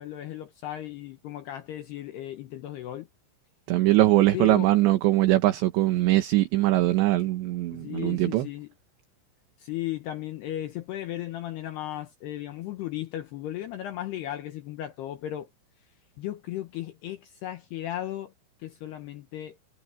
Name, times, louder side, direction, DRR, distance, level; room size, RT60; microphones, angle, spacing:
voice 1, 0.0-3.1 4.3-4.7 7.7-8.7 9.6-15.5 16.2-18.3 18.6-19.6, left 13 dB, 75° left, 2.5 m, -35 dB
voice 2, 3.7-8.5, right 16 dB, 70° right, 3.2 m, -22 dB
omnidirectional pair, 5.9 m